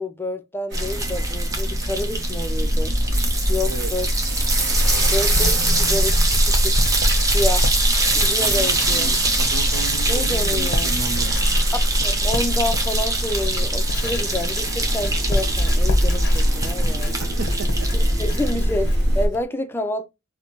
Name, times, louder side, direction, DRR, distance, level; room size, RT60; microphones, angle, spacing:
voice 1, 0.0-3.0 3.5-4.1 5.1-6.8 7.3-7.7 8.1-9.2 10.0-10.9 12.0-17.2 17.9-20.1, left 1 dB, 10° left, 0.4 m, -28 dB
sound 1, 0.7-18.6, right 2 dB, 15° right, 0.7 m, -25 dB
sound 2, 0.7-19.3, equal, 55° right, 1.2 m, -23 dB
Writing, 4.1-19.4, left 1 dB, 55° left, 0.6 m, -29 dB
voice 2, 8.4-11.4 17.2-17.9, right 3 dB, 75° right, 0.5 m, -33 dB
4.3 x 2.1 x 2.8 m
head